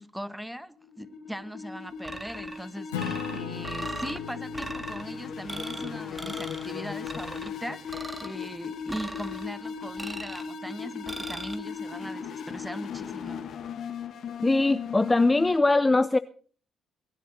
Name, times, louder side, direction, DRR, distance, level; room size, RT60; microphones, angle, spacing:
voice 1, 0.0-13.4, equal, ahead, 1.6 m, -39 dB
sound 1, 0.8-15.6, left 7 dB, 65° left, 1.8 m, -38 dB
sound 2, 2.0-2.6 3.0-4.2 4.5-5.0 5.5-5.9 6.2-6.7 7.1-7.5 7.9-8.3 8.9-9.5 10.0-10.5 11.1-11.5, right 2 dB, 20° right, 2.0 m, -38 dB
Acoustic guitar / Strum, 2.9-7.9, left 8 dB, 90° left, 1.8 m, -40 dB
voice 2, 14.4-16.2, left 2 dB, 20° left, 0.6 m, -21 dB
22.5 x 11.0 x 4.2 m
hypercardioid pair, 45°, 0 cm